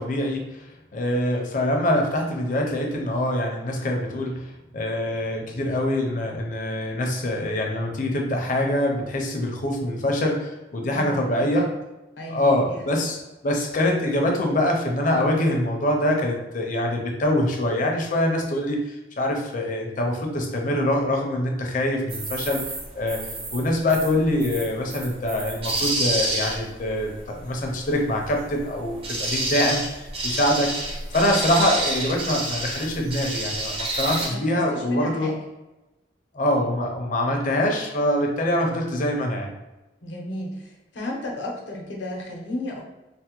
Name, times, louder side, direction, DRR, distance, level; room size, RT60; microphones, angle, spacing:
voice 1, 0.0-11.7 12.3-13.2 13.4-22.6 23.0-23.2 23.5-35.3 36.3-39.5, left 1 dB, 45° left, 2 dB, 0.5 m, -24 dB
voice 2, 10.9-11.8 12.2-12.8 34.2-35.4 40.0-42.8, left 1 dB, 85° left, -2 dB, 0.7 m, -33 dB
sound 1, 22.1-34.3, right 2 dB, 30° right, 0.5 m, -29 dB
3.3 x 2.1 x 2.9 m, 1.0 s
head